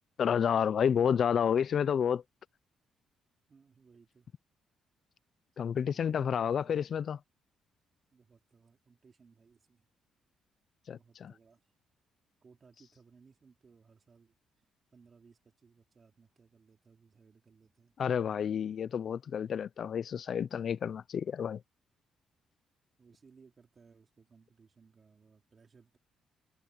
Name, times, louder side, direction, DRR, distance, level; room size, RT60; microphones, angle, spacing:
voice 1, 0.2-2.2 5.6-7.2 10.9-11.3 18.0-21.6, left 8 dB, 55° left, 0.7 m, -30 dB
voice 2, 3.5-4.3 5.6-7.0 8.1-9.9 10.9-11.6 12.4-14.4 14.9-17.9 23.0-26.0, right 5 dB, 40° right, 4.8 m, -62 dB
cardioid pair, 90°, 0 cm